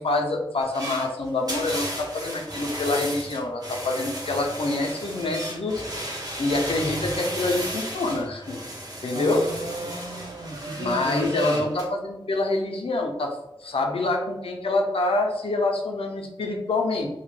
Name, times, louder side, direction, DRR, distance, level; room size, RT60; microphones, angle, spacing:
voice 1, 0.0-6.0 6.4-8.6 9.0-9.5 10.8-17.1, left 2 dB, 85° left, 2 dB, 0.4 m, -26 dB
sound 1, 0.6-11.8, right 1 dB, 45° right, 0.8 m, -34 dB
voice 2, 9.1-11.6, right 2 dB, 65° right, 1 dB, 0.4 m, -34 dB
2.1 x 2.0 x 3.0 m, 0.92 s
wide cardioid pair, 60°, 9 cm